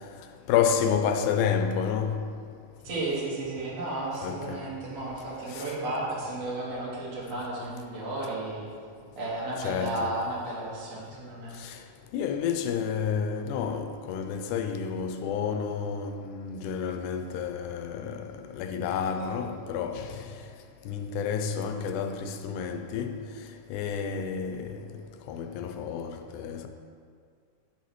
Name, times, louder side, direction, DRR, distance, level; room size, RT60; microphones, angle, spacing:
voice 1, 0.5-2.2 4.2-4.6 5.5-5.6 9.6-10.1 11.6-11.7 12.1-18.3 18.5-20.1 20.9-23.2 23.7-24.8 25.3-26.7, left 7 dB, 90° left, 2.1 m, -30 dB
voice 2, 2.8-8.6 9.2-11.6, right 2 dB, 60° right, 2.8 m, -33 dB
11.0 x 5.7 x 3.1 m
omnidirectional pair, 3.5 m